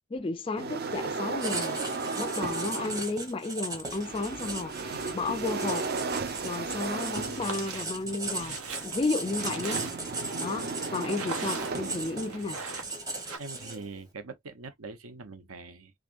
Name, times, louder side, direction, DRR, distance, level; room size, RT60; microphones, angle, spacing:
voice 1, 0.1-1.8 2.1-5.9 6.4-9.8 10.4-12.6, left 3 dB, 25° left, 0.3 m, -33 dB
sound 1, 0.6-3.2 3.8-12.7, right 4 dB, 45° right, 0.6 m, -35 dB
Writing, 1.4-14.0, right 3 dB, 15° right, 0.8 m, -38 dB
sound 2, 7.3-7.9 8.3-10.2 11.0-12.0 12.3-13.4, right 4 dB, 90° right, 1.3 m, -39 dB
voice 2, 13.4-15.9, right 4 dB, 75° right, 0.9 m, -43 dB
3.6 x 3.3 x 2.5 m
head